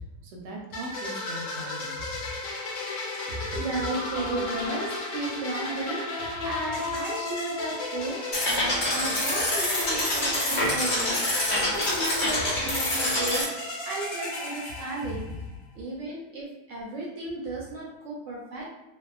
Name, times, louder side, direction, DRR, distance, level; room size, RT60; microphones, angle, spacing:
voice 1, 0.2-2.0 3.4-3.5 15.0-15.2, right 1 dB, 85° right, 0 dB, 1.2 m, -39 dB
sound 1, 0.7-15.5, left 2 dB, 65° left, 0.8 m, -34 dB
voice 2, 3.1-8.2 8.9-15.3 15.7-18.7, right 2 dB, 65° right, -4 dB, 0.8 m, -34 dB
sound 2, 8.3-13.4, left 1 dB, 85° left, 0.4 m, -26 dB
2.8 x 2.0 x 2.3 m, 0.97 s
omnidirectional pair, 1.8 m